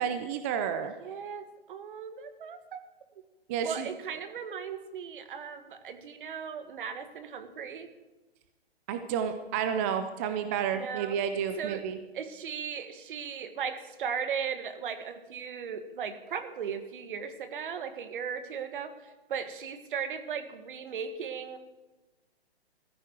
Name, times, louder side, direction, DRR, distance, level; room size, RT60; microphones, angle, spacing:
voice 1, 0.0-0.9 3.5-3.9 8.9-12.0, right 8 dB, 15° right, 9 dB, 0.4 m, -30 dB
voice 2, 1.0-2.8 3.6-7.9 10.7-11.2 11.6-11.8 12.1-21.6, right 7 dB, 55° right, 9 dB, 1.7 m, -37 dB
17.0 x 14.0 x 4.6 m, 1.1 s
hypercardioid pair, 145°, 32 cm